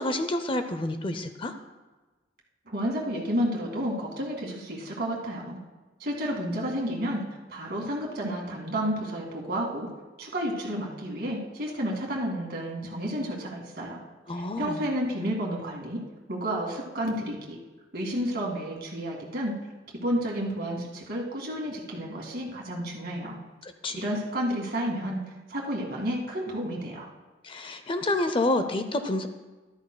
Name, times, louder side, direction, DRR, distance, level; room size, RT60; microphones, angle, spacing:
voice 1, 0.0-1.5 14.3-14.8 23.6-24.0 27.4-29.3, left 2 dB, 30° left, 8 dB, 0.5 m, -28 dB
voice 2, 2.7-5.6 6.0-7.2 7.5-9.9 10.2-14.0 14.3-16.0 16.3-17.6 17.9-19.6 20.0-23.4 24.0-25.2 25.5-27.1, equal, 55° right, -1 dB, 2.1 m, -31 dB
14.0 x 12.5 x 2.3 m, 1.2 s
head